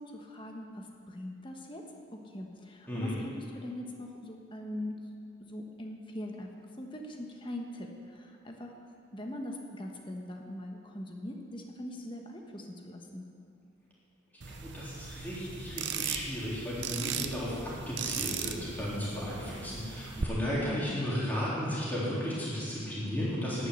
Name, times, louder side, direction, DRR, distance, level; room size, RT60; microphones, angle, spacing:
voice 1, 0.0-5.0 5.4-6.5 6.8-8.7 9.1-13.3 20.6-21.0, left 1 dB, 25° left, 2 dB, 1.3 m, -41 dB
sound 1, 14.4-20.2, right 7 dB, 65° right, 0.7 m, -38 dB
voice 2, 14.5-23.7, equal, 10° left, -8 dB, 3.7 m, -34 dB
11.5 x 9.8 x 8.1 m, 2.5 s
head